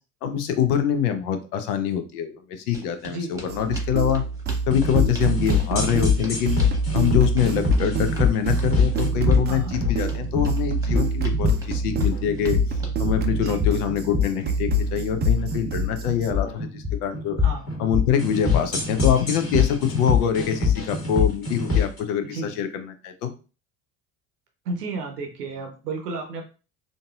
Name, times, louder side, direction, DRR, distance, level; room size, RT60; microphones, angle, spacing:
voice 1, 0.2-2.4 2.7-4.2 4.7-6.6 6.9-12.6 13.0-17.4 17.8-23.3, left 9 dB, 70° left, 8 dB, 0.7 m, -24 dB
sound 1, 2.7-13.0, right 1 dB, 5° right, 1.2 m, -41 dB
voice 2, 3.1-3.7 9.5-9.7 13.4-13.6 17.4-17.7 22.2-22.6 24.6-26.4, right 3 dB, 80° right, 3 dB, 0.8 m, -33 dB
sound 2, 3.5-16.3, right 5 dB, 25° right, 0.4 m, -27 dB
sound 3, 4.7-22.0, left 5 dB, 30° left, 1.4 m, -24 dB
3.9 x 2.5 x 2.3 m, 0.34 s
figure-of-eight pair, 60°, 46 cm